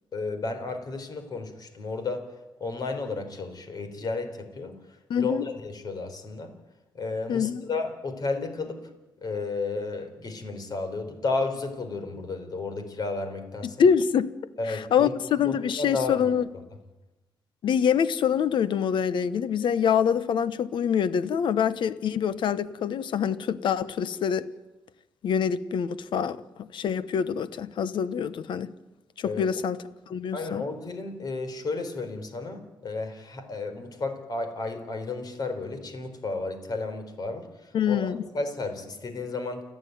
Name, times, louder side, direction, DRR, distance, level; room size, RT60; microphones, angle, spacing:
voice 1, 0.1-2.2 2.6-4.8 5.2-6.5 6.9-8.8 9.2-13.8 14.6-15.1 15.4-16.3 29.2-29.5 30.3-39.6, left 3 dB, 50° left, 8 dB, 4.1 m, -32 dB
voice 2, 5.1-5.5 7.3-7.6 13.6-14.3 14.7-16.4 17.6-24.5 25.2-26.4 26.7-28.7 29.2-29.8 30.1-30.6 37.7-38.2, left 7 dB, 70° left, 15 dB, 1.1 m, -25 dB
29.5 x 9.8 x 9.5 m, 1.0 s
cardioid pair, 90°, 9 cm